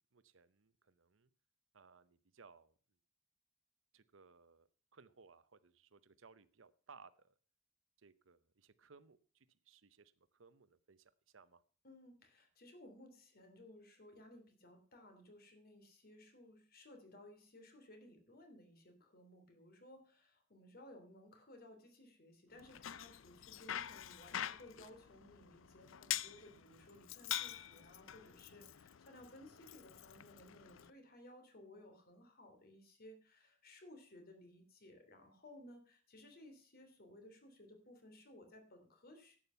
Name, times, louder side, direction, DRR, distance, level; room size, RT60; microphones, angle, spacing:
voice 1, 0.1-1.3 1.7-2.8 3.9-7.3 8.0-11.6, right 5 dB, 80° right, 0.8 m, -63 dB
voice 2, 11.8-39.4, left 1 dB, 50° left, 3.1 m, -59 dB
Bicycle, 22.6-30.9, left 11 dB, 85° left, 0.5 m, -46 dB
11.0 x 8.8 x 5.6 m
head